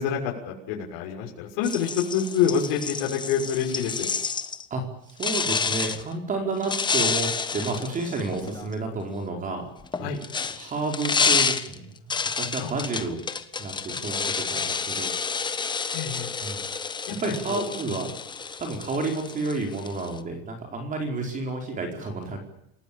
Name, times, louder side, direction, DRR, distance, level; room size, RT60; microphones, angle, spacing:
voice 1, 0.0-4.1 10.0-10.2 12.6-12.7 13.9-14.1 15.9-16.3 17.1-17.6, left 7 dB, 70° left, 0 dB, 6.4 m, -27 dB
sound 1, 1.6-4.6 5.2-6.0 6.6-8.7 9.8-20.2, left 5 dB, 15° left, 1.3 m, -29 dB
voice 2, 4.7-9.6 10.0-10.1 10.5-12.0 12.4-13.2 13.6-15.1 16.4-16.6 17.2-18.1 18.6-22.4, right 3 dB, 25° right, 4 dB, 4.8 m, -30 dB
28.5 x 18.0 x 8.9 m, 0.79 s
cardioid pair, 150°, 30 cm